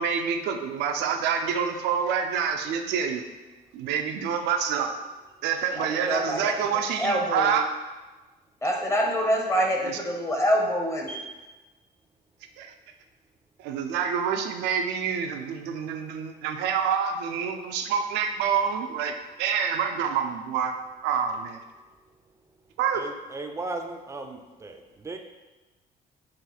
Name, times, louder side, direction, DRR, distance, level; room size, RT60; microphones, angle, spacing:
voice 1, 0.0-3.2 3.7-4.9 5.4-7.7 9.8-10.0 12.6-12.7 13.6-20.7 21.0-21.6 22.8-23.0, right 7 dB, 90° right, 5 dB, 0.4 m, -27 dB
voice 2, 5.7-6.5 7.0-7.5 8.6-11.2, equal, 15° left, 1 dB, 0.7 m, -26 dB
voice 3, 22.9-25.2, right 2 dB, 15° right, 5 dB, 0.4 m, -36 dB
4.3 x 2.4 x 3.9 m, 1.2 s
cardioid pair, 110°, 17 cm